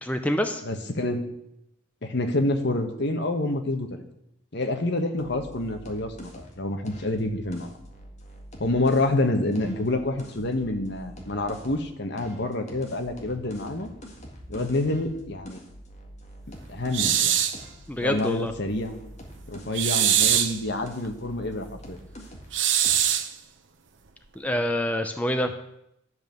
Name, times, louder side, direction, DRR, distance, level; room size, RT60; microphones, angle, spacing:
voice 1, 0.0-0.6 17.9-18.5 24.4-25.5, left 1 dB, 5° left, 6 dB, 0.6 m, -26 dB
voice 2, 0.6-1.3 2.0-3.9 4.5-7.7 8.6-13.9 14.5-15.6 16.7-17.4 18.0-19.0 19.5-22.0, left 2 dB, 60° left, 6 dB, 1.3 m, -27 dB
sound 1, 5.2-9.1 9.5-11.9 12.2-19.9 20.2-22.6 22.8-23.2, equal, 35° left, 1.9 m, -45 dB
sound 2, 16.9-17.6 19.7-20.6 22.5-23.3, right 10 dB, 65° right, 0.8 m, -22 dB
11.0 x 5.5 x 7.8 m, 0.80 s
head